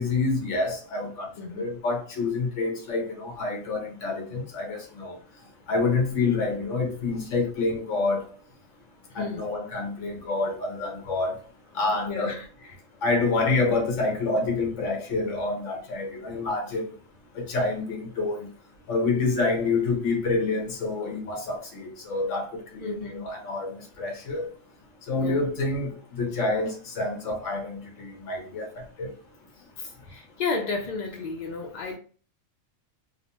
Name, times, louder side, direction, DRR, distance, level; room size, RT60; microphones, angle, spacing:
voice 1, 0.0-5.2 5.7-8.2 9.2-11.4 11.7-12.4 13.0-16.9 17.4-18.5 18.9-22.5 22.8-24.5 25.1-28.7 29.0-29.1, left 3 dB, 65° left, 1.2 m, -27 dB
voice 2, 1.4-1.8 9.1-9.5 12.1-12.8 22.8-23.3 25.2-25.4 30.1-32.0, left 4 dB, 90° left, 0.4 m, -33 dB
2.9 x 2.1 x 2.8 m
omnidirectional pair, 1.4 m